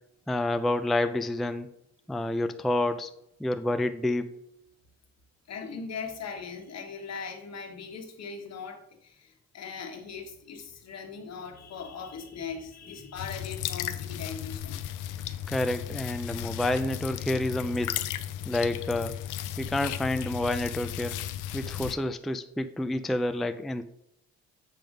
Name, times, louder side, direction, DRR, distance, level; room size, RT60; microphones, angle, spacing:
voice 1, 0.3-1.7 2.1-3.1 3.4-4.3 15.5-18.0 18.5-19.1 19.6-21.2 21.5-23.8, left 1 dB, ahead, 8 dB, 0.4 m, -29 dB
voice 2, 5.5-14.8, left 5 dB, 60° left, 4 dB, 1.4 m, -40 dB
sound 1, 13.2-21.9, left 11 dB, 85° left, 0.6 m, -35 dB
7.7 x 3.5 x 5.1 m, 0.78 s
cardioid pair, 90°, 30 cm